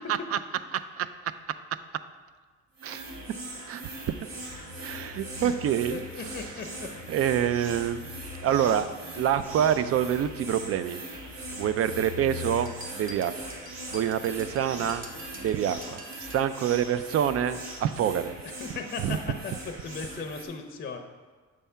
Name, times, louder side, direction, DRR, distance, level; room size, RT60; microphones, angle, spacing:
voice 1, 0.7-1.3 2.8-3.0 3.7-4.1 4.8-6.0 7.1-8.0 8.4-11.0 11.5-13.3 13.9-15.0 15.3-18.3 19.0-19.2, right 9 dB, 50° right, 13 dB, 0.4 m, -27 dB
sound 1, 2.8-20.5, right 2 dB, 70° right, 1.4 m, -41 dB
sound 2, 4.5-16.0, left 9 dB, 90° left, 0.6 m, -46 dB
voice 2, 5.9-6.9 18.6-21.0, left 5 dB, 30° left, 5 dB, 0.6 m, -37 dB
sound 3, 12.7-16.5, right 1 dB, 30° right, 0.9 m, -46 dB
7.4 x 3.4 x 5.5 m, 1.4 s
cardioid pair, 90°, 30 cm